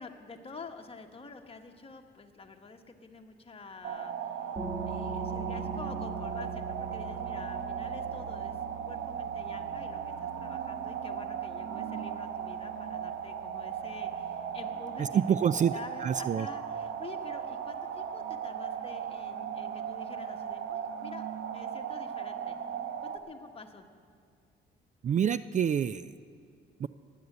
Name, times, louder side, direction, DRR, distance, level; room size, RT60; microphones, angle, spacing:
voice 1, 0.0-4.5 4.9-8.6 8.9-22.6 23.0-23.8, left 4 dB, 30° left, 4 dB, 1.4 m, -48 dB
sound 1, 3.8-23.2, right 8 dB, 75° right, 1.2 m, -37 dB
sound 2, 4.6-15.9, right 4 dB, 20° right, 1.9 m, -43 dB
voice 2, 15.0-15.7 16.0-16.5 25.0-26.1 26.8-26.9, right 8 dB, 40° right, 15 dB, 0.4 m, -27 dB
16.5 x 9.6 x 8.1 m, 2.1 s
cardioid pair, 90°, 20 cm